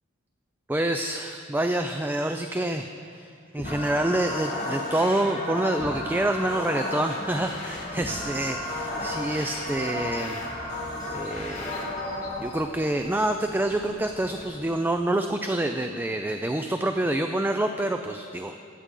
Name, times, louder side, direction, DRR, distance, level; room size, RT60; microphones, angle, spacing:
voice 1, 0.7-10.8 11.1-12.0 12.4-18.5, right 1 dB, 10° right, 6 dB, 0.3 m, -27 dB
sound 1, 3.6-12.4, left 1 dB, 40° left, 3.5 m, -33 dB
sound 2, 7.2-14.6, left 1 dB, 20° left, 3.7 m, -46 dB
22.5 x 8.4 x 3.8 m, 2.5 s
head